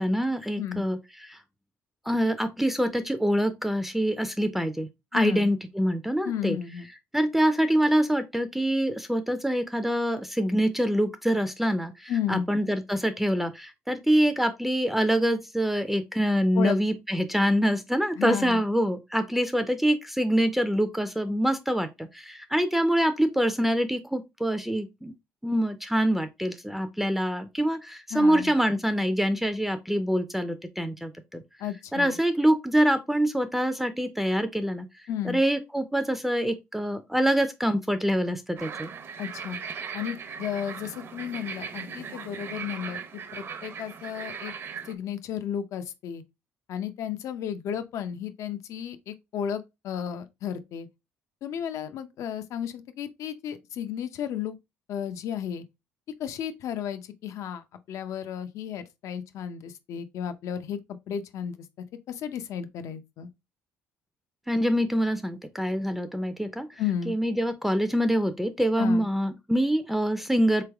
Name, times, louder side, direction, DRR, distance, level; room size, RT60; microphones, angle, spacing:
voice 1, 0.0-1.4 2.1-6.6 7.1-25.1 25.4-31.4 31.9-34.9 35.3-38.9 64.5-66.7 67.1-70.6, equal, 5° right, 0.5 m, -25 dB
voice 2, 5.1-5.5 6.2-6.9 12.1-12.5 16.5-16.8 18.2-18.6 28.1-28.5 31.6-32.2 35.1-35.4 39.2-39.6 39.9-44.5 44.9-46.2 46.7-50.9 51.4-54.6 54.9-55.6 56.2-60.8 61.1-61.6 62.1-63.3 66.8-67.1 68.8-69.1, left 9 dB, 70° left, 0.6 m, -33 dB
sound 1, 38.6-44.9, right 6 dB, 45° right, 0.7 m, -38 dB
3.8 x 3.3 x 3.4 m
cardioid pair, 95°, 6 cm